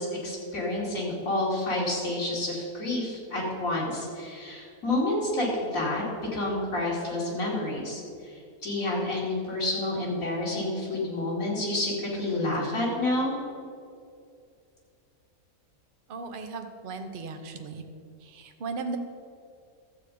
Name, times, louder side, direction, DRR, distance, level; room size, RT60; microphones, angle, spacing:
voice 1, 0.0-6.0 6.3-13.3, left 1 dB, 65° left, -5 dB, 3.1 m, -29 dB
voice 2, 16.1-17.8 18.2-19.0, right 4 dB, 45° right, 6 dB, 0.9 m, -36 dB
12.5 x 8.1 x 5.1 m, 2.3 s
omnidirectional pair, 1.5 m